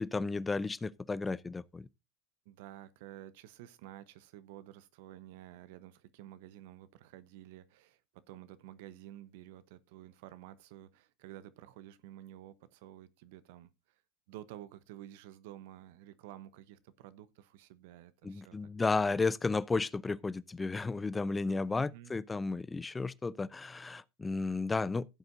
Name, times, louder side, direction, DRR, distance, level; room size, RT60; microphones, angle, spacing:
voice 1, 0.0-1.9 18.2-25.1, left 3 dB, 15° left, 0.6 m, -33 dB
voice 2, 2.4-13.7 14.3-19.0 21.7-22.1, right 13 dB, 65° right, 0.9 m, -51 dB
16.0 x 7.9 x 2.6 m
hypercardioid pair, 85°, 0 cm